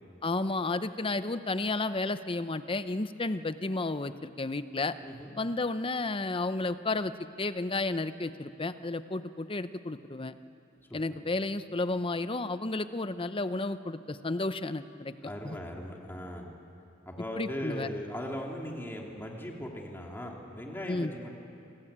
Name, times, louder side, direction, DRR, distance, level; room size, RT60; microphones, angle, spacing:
voice 1, 0.2-4.9 5.4-10.3 10.9-15.6 17.4-17.9 20.9-21.1, left 2 dB, 25° left, 12 dB, 0.7 m, -32 dB
voice 2, 5.0-5.4 10.9-11.0 15.2-16.5 17.1-21.3, equal, 10° left, 0 dB, 2.6 m, -39 dB
27.5 x 19.5 x 8.8 m, 2.9 s
head